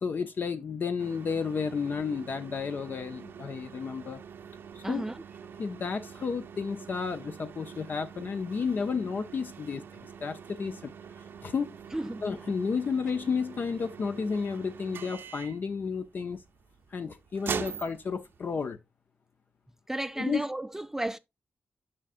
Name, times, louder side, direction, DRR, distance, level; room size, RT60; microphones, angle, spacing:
voice 1, 0.0-4.2 4.7-5.0 5.6-10.9 11.4-11.8 12.2-16.4 16.9-18.8 20.2-20.4, left 5 dB, 55° left, 0.6 m, -32 dB
sound 1, 1.0-18.7, right 7 dB, 70° right, 0.6 m, -44 dB
voice 2, 4.8-5.1 11.9-12.2 19.9-21.2, right 1 dB, 10° right, 0.3 m, -33 dB
8.4 x 5.6 x 2.5 m
cardioid pair, 80°, 4 cm